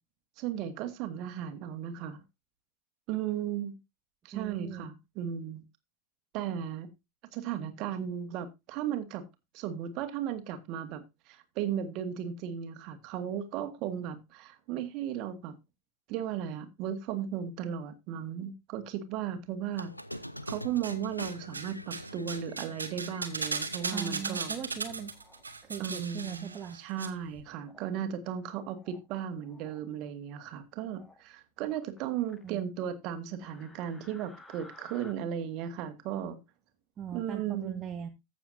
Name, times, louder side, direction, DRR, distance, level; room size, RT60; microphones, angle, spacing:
voice 1, 0.4-2.2 3.1-3.8 4.2-5.6 6.3-6.9 7.3-9.2 9.5-15.5 16.1-19.9 20.5-24.5 25.8-36.4 37.1-37.8, right 9 dB, 40° right, 1.6 m, -36 dB
voice 2, 4.3-4.9 23.9-25.1 25.6-26.8 32.4-32.7 37.0-38.1, right 8 dB, 25° right, 1.1 m, -39 dB
Squeak, 19.7-25.1, equal, 90° left, 0.5 m, -44 dB
sound 1, 20.1-20.9 21.2-27.1 27.3-27.4, right 4 dB, 75° right, 1.2 m, -37 dB
sound 2, 23.8-24.4 25.1-25.4 26.2-26.7 27.6-28.0 28.5-29.1 29.4-29.8 30.8-31.2 31.6-32.5 33.4-35.1, left 2 dB, 10° left, 1.7 m, -56 dB
14.5 x 6.9 x 2.7 m
figure-of-eight pair, 90°, 0 cm